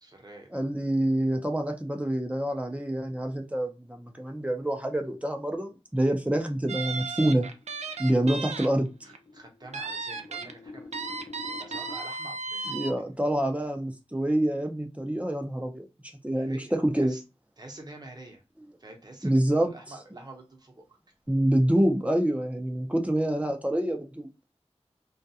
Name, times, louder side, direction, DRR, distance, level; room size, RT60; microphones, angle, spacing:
voice 1, 0.0-0.6 8.1-8.4 9.0-12.8 13.1-13.6 16.3-17.2 17.6-18.4 18.8-21.0, right 2 dB, 35° right, 0.8 m, -48 dB
voice 2, 0.5-7.5 8.0-8.9 12.7-15.9 16.2-17.1 19.2-19.7 21.3-24.3, right 1 dB, 10° right, 0.5 m, -26 dB
sound 1, 6.7-8.7 9.0-9.2 9.7-10.5 10.9-12.9, right 4 dB, 80° right, 0.4 m, -35 dB
sound 2, 7.5-12.0, left 3 dB, 45° left, 0.5 m, -47 dB
2.3 x 2.2 x 2.7 m
wide cardioid pair, 55°, 11 cm